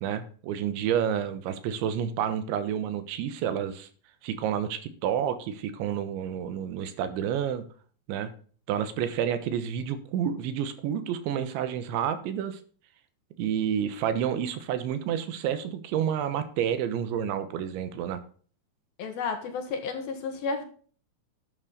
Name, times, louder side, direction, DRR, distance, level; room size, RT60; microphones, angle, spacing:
voice 1, 0.0-3.9 4.2-7.7 8.1-8.3 8.7-12.6 13.4-18.2, right 9 dB, 85° right, 3.5 m, -29 dB
voice 2, 19.0-20.6, left 4 dB, 65° left, 3.0 m, -32 dB
11.5 x 9.7 x 4.0 m
omnidirectional pair, 5.2 m